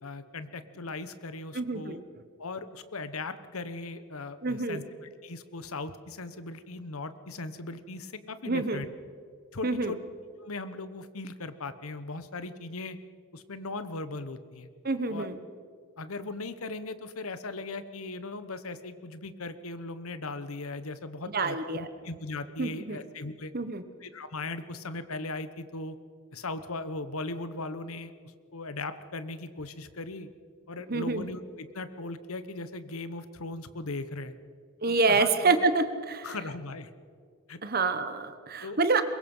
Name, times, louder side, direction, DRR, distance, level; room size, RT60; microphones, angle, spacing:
voice 1, 0.0-2.0 2.4-8.9 9.5-10.0 10.4-13.0 13.3-14.7 15.1-15.3 16.0-23.5 24.0-26.0 26.3-30.3 30.7-34.3 34.9-35.5 36.2-36.9 37.5-37.6 38.6-39.0, left 3 dB, 85° left, 12 dB, 1.1 m, -38 dB
voice 2, 1.5-2.0 4.4-4.8 8.5-8.8 9.6-9.9 14.8-15.4 21.3-21.9 22.6-23.0 23.5-23.8 30.9-31.2 34.8-36.3 37.6-39.0, right 3 dB, 45° right, 10 dB, 1.2 m, -27 dB
23.0 x 21.5 x 5.6 m, 2.1 s
head